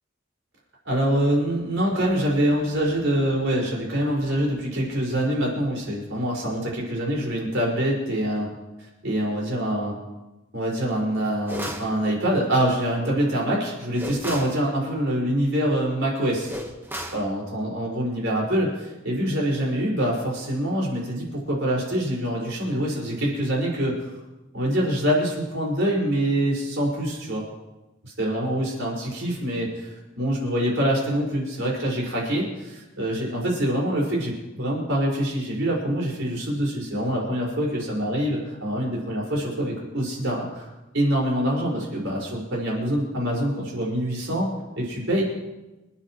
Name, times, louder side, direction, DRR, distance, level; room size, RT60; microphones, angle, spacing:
voice 1, 0.9-8.5 8.8-10.0 10.5-16.5 17.1-24.1 24.5-27.4 28.2-40.7 40.9-44.5 44.8-45.2, equal, 70° right, -3 dB, 5.5 m, -25 dB
sound 1, 11.5-11.9 14.0-14.6 16.5-17.3, equal, 10° right, 1.3 m, -33 dB
28.0 x 10.5 x 3.2 m, 1.0 s
head